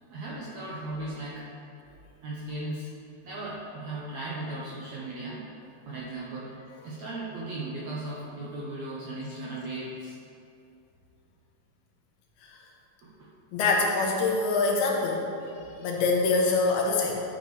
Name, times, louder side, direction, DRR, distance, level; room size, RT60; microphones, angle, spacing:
voice 1, 0.1-1.5 2.2-3.0 3.2-5.5 5.8-10.1 13.0-13.3, right 2 dB, 70° right, -6 dB, 1.7 m, -37 dB
voice 2, 13.5-15.2 15.8-17.2, left 3 dB, 80° left, -1 dB, 2.9 m, -24 dB
12.5 x 8.4 x 3.3 m, 2.6 s
omnidirectional pair, 4.6 m